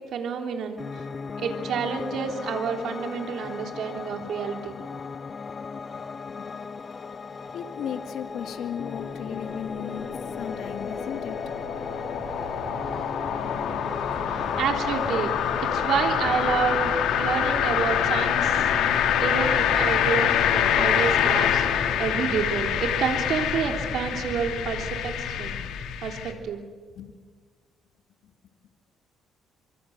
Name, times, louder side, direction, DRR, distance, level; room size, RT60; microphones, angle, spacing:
voice 1, 0.1-0.8 1.4-4.8 14.3-15.3 15.6-18.6 18.9-25.6 26.0-26.6, right 6 dB, 65° right, 3 dB, 3.4 m, -29 dB
Piano, 0.8-16.9, left 5 dB, 30° left, 1.0 m, -37 dB
voice 2, 5.9-6.5 7.4-10.1 10.4-11.4 27.0-27.2 28.2-28.3, left 9 dB, 70° left, 6 dB, 2.2 m, -36 dB
sound 1, 8.7-26.3, left 9 dB, 85° left, 2.8 m, -26 dB
sound 2, 12.1-25.1, right 1 dB, 10° right, 4.9 m, -43 dB
25.0 x 24.5 x 8.0 m, 1.5 s
cardioid pair, 130°, 0 cm